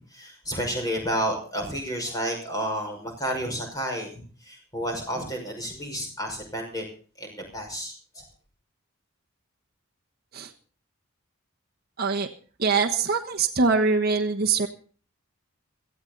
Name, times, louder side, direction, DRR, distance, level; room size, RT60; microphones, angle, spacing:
voice 1, 0.0-6.8 7.2-8.3, equal, 15° left, 2 dB, 5.6 m, -31 dB
voice 2, 12.0-12.3 12.6-14.7, right 4 dB, 45° right, 1 dB, 1.3 m, -23 dB
18.0 x 14.0 x 4.0 m, 0.40 s
head